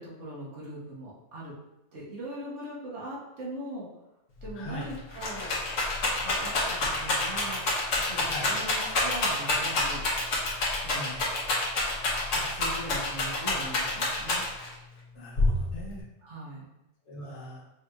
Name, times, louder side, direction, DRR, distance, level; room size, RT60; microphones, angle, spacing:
voice 1, 0.0-1.5 1.9-3.9 4.4-5.5 6.2-7.6 8.0-10.1 10.7-11.2 12.3-14.4 16.2-16.7, right 1 dB, 75° right, -5 dB, 1.4 m, -40 dB
Rattle, 4.4-4.5 4.8-14.7 15.4-16.0, left 2 dB, 85° left, 1.3 m, -28 dB
voice 2, 4.6-4.9 8.3-8.6 11.0-11.2 15.1-16.0 17.1-17.6, equal, 70° left, -4 dB, 1.3 m, -40 dB
5.4 x 2.9 x 2.4 m, 0.91 s
omnidirectional pair, 1.2 m